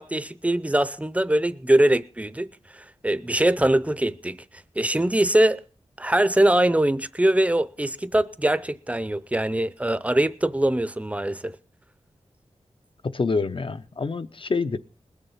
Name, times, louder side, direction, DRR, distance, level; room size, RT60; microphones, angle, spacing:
voice 1, 0.0-2.5 2.7-4.4 4.8-5.6 6.0-11.5, right 1 dB, 10° right, 0.6 m, -22 dB
voice 2, 13.0-14.8, left 4 dB, 50° left, 0.7 m, -26 dB
20.5 x 7.1 x 5.6 m
wide cardioid pair, 100°, 11 cm